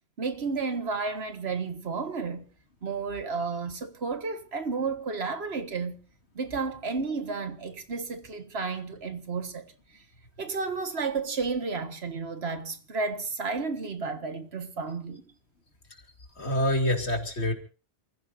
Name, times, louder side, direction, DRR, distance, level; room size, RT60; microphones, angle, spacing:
voice 1, 0.2-2.5 2.8-6.0 6.3-9.6 9.9-10.0 10.4-15.2, right 4 dB, 75° right, 1.7 m, -32 dB
voice 2, 16.4-17.5, left 1 dB, 85° left, 2.9 m, -26 dB
28.5 x 15.5 x 2.6 m
omnidirectional pair, 1.1 m